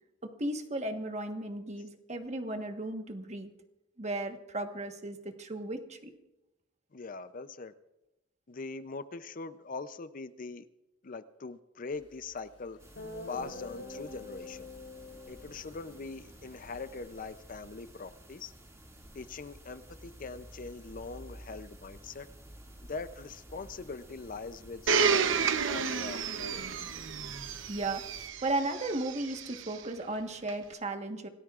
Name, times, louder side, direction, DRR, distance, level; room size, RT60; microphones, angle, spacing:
voice 1, 0.2-3.5 4.0-6.1 27.7-28.0 28.4-31.3, right 2 dB, 35° right, 5 dB, 1.3 m, -35 dB
voice 2, 6.9-7.7 8.5-10.7 11.0-12.8 13.3-14.7 15.3-18.5 19.1-22.3 22.9-26.7, left 4 dB, 45° left, 12 dB, 0.6 m, -42 dB
Guitar, 12.4-12.5 13.0-17.1, left 2 dB, 80° left, 6.7 m, -46 dB
sound 1, 12.8-28.3, equal, 15° right, 2.2 m, -52 dB
Domestic sounds home sounds, 24.9-29.7 30.5-30.6, right 6 dB, 80° right, 0.8 m, -31 dB
26.5 x 18.5 x 2.5 m, 0.99 s
head